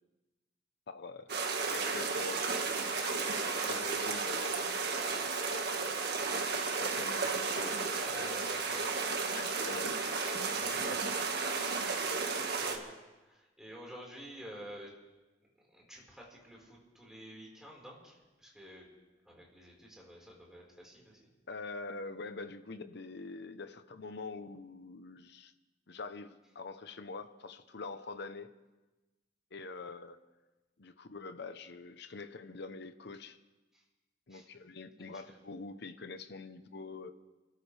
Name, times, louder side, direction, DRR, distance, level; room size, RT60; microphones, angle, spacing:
voice 1, 0.9-3.1 3.5-4.6 6.6-8.3 9.3-10.0 21.5-25.5 25.9-28.5 29.5-30.2 30.8-33.4 34.3-37.1, left 3 dB, 65° left, 10 dB, 0.9 m, -45 dB
sound 1, 1.3-12.8, right 4 dB, 60° right, 1.8 m, -33 dB
voice 2, 7.7-9.0 10.5-11.0 11.7-12.1 12.4-12.9 13.2-14.9 15.7-18.9 19.2-21.3 33.7-33.8 34.3-34.5 35.0-35.4, equal, 5° right, -3 dB, 4.7 m, -51 dB
29.5 x 13.5 x 3.4 m, 1.1 s
head